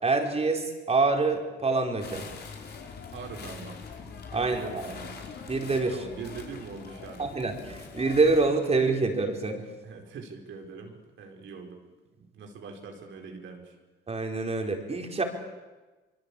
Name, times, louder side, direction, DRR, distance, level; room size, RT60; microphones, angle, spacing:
voice 1, 0.0-2.2 4.3-4.9 5.5-6.0 7.2-9.6 14.1-15.2, right 3 dB, 30° right, 3 dB, 4.6 m, -26 dB
sound 1, 2.0-8.5, left 5 dB, 55° left, 4.9 m, -43 dB
voice 2, 3.1-3.8 4.3-5.2 5.9-7.2 9.8-11.8 12.2-13.8, right 4 dB, 75° right, 2 dB, 4.6 m, -42 dB
24.0 x 23.5 x 8.6 m, 1.2 s
cardioid pair, 90°, 20 cm